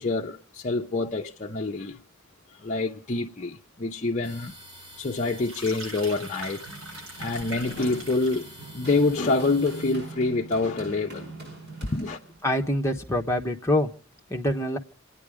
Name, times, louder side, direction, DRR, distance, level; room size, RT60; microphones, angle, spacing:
voice 1, 0.0-2.0 2.6-4.6 5.0-6.7 7.2-11.3 11.9-12.2, left 3 dB, 35° left, 0.7 m, -27 dB
sound 1, 4.2-9.9, equal, 25° right, 4.4 m, -47 dB
sound 2, 5.3-8.5, right 1 dB, 70° right, 7.3 m, -41 dB
Run, 6.3-12.5, right 3 dB, 55° right, 6.2 m, -43 dB
voice 2, 12.4-13.9 14.3-14.8, left 1 dB, 15° left, 1.2 m, -25 dB
28.5 x 9.9 x 5.0 m
head